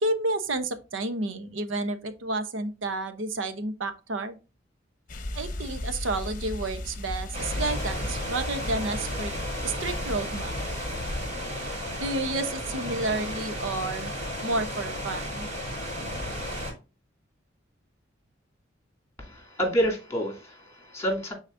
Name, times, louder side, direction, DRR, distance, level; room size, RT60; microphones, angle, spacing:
voice 1, 0.0-4.4 5.3-9.3 9.6-10.5 12.0-14.1 14.4-15.5, right 2 dB, 80° right, 9 dB, 0.9 m, -30 dB
sound 1, 5.1-11.3, left 1 dB, 45° left, 0.9 m, -35 dB
sound 2, 7.3-16.7, equal, 40° right, 4.0 m, -34 dB
voice 2, 19.2-21.3, equal, 15° left, 1 dB, 2.5 m, -28 dB
9.4 x 4.0 x 2.6 m, 0.30 s
head